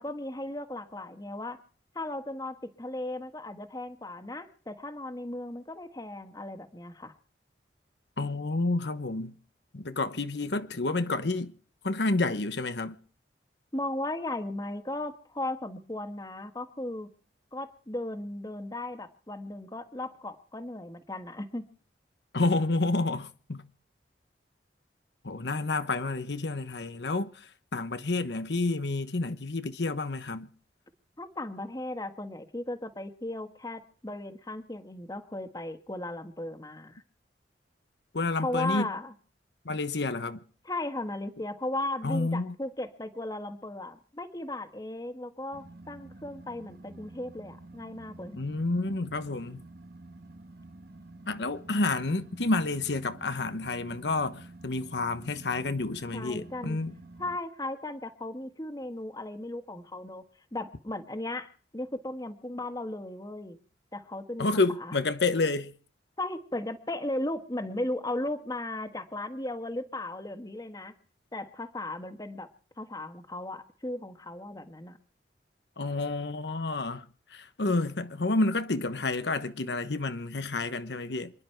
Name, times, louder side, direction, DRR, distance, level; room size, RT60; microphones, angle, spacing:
voice 1, 0.0-1.6 1.9-7.1 13.7-17.1 17.5-21.7 31.2-37.0 38.4-39.1 40.6-48.4 56.1-56.8 57.2-60.2 60.5-63.6 63.9-64.5 64.8-65.0 66.2-70.9 71.3-72.5 72.8-75.0, left 1 dB, 20° left, 1.4 m, -36 dB
voice 2, 8.2-9.4 9.7-11.5 11.8-13.0 22.3-23.7 25.2-30.5 38.1-38.9 39.6-40.4 42.0-42.5 48.3-49.6 51.3-57.0 64.4-65.7 75.8-81.3, left 3 dB, 75° left, 1.1 m, -29 dB
sound 1, 45.5-57.4, right 2 dB, 60° right, 1.4 m, -49 dB
27.5 x 11.0 x 4.6 m
head